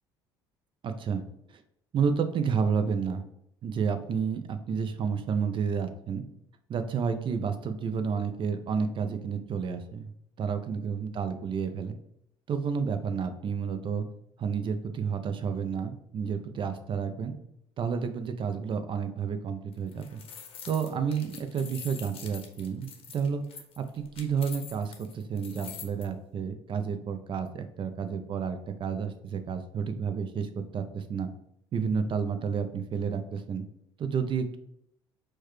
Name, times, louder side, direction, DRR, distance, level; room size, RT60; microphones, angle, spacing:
voice 1, 0.8-1.2 1.5-1.6 1.9-3.2 3.6-6.2 6.7-10.1 10.4-11.9 12.5-14.1 14.4-17.3 17.8-20.2 20.7-31.3 31.7-33.6 34.0-34.6, right 6 dB, 45° right, 9 dB, 0.5 m, -30 dB
sound 1, 19.7-26.0, left 7 dB, 50° left, 0.7 m, -45 dB
4.5 x 2.2 x 3.1 m, 0.76 s
hypercardioid pair, 70°, 12 cm